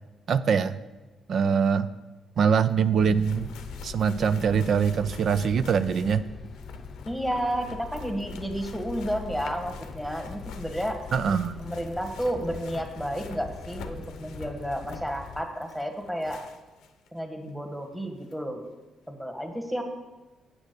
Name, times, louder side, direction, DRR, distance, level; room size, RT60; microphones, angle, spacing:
voice 1, 0.3-0.8 1.3-1.9 2.4-3.5 3.8-6.3 11.1-11.5, right 6 dB, 60° right, 13 dB, 0.4 m, -23 dB
sound 1, 2.7-2.8 3.0-17.1 17.5-17.6 18.3-18.4, left 6 dB, 85° left, 0.7 m, -48 dB
sound 2, 3.0-15.4, left 5 dB, 40° left, 0.7 m, -42 dB
voice 2, 7.0-11.0 11.6-16.4 17.1-18.6 19.1-19.8, equal, 5° right, 4 dB, 1.5 m, -31 dB
sound 3, 8.6-13.8, left 2 dB, 10° left, 1.1 m, -50 dB
8.4 x 6.2 x 6.7 m, 1.1 s
cardioid pair, 90°, 0 cm